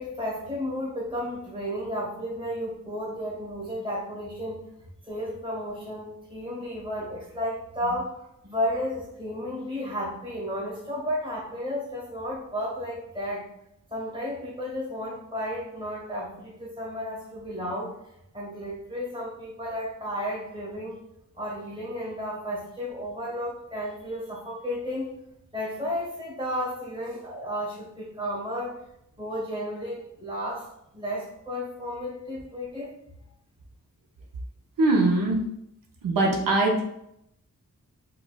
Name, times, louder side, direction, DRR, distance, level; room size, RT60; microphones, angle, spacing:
voice 1, 0.0-4.6 5.0-13.5 13.9-17.9 18.3-21.0 21.4-25.1 25.5-28.8 29.2-30.7 30.9-32.9, equal, 15° right, -4 dB, 1.2 m, -33 dB
voice 2, 34.8-35.4 36.0-36.8, right 2 dB, 90° right, 0 dB, 0.7 m, -21 dB
4.8 x 2.3 x 2.2 m, 0.78 s
wide cardioid pair, 130°, 32 cm